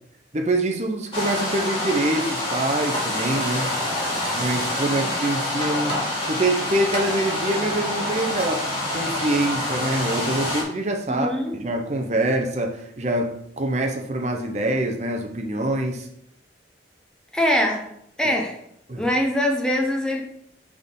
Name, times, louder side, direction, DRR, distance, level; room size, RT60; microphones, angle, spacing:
voice 1, 0.3-3.7 4.3-11.3 11.6-16.1 18.9-19.0, right 1 dB, 40° right, 3 dB, 0.7 m, -25 dB
sound 1, 1.1-10.6, left 1 dB, 30° left, 1.9 m, -26 dB
voice 2, 11.1-11.6 17.3-17.9 18.2-18.6 18.9-20.2, left 1 dB, 5° left, 0 dB, 0.7 m, -23 dB
6.1 x 3.6 x 5.3 m, 0.74 s
head